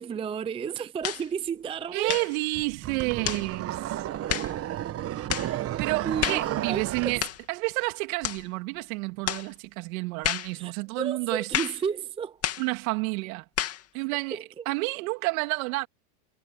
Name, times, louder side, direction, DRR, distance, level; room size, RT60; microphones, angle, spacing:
voice 1, 0.0-2.2 6.0-6.4 6.7-7.1 10.6-12.4 13.9-14.0 14.3-14.6, right 7 dB, 15° right, 0.5 m, -32 dB
sound 1, 1.0-1.3 2.0-2.4 3.2-3.5 4.3-4.5 5.3-5.5 6.2-6.5 7.2-7.4 8.2-8.4 9.3-9.5 10.2-10.5 11.5-11.8 12.4-12.7 13.6-13.8, left 11 dB, 30° left, 2.3 m, -30 dB
voice 2, 1.9-4.1 5.8-7.2 7.5-11.5 12.6-13.4 13.9-14.4 14.6-15.9, right 26 dB, 65° right, 3.0 m, -30 dB
sound 2, 2.6-7.3, right 12 dB, 30° right, 1.3 m, -32 dB
supercardioid pair, 130°, 44 cm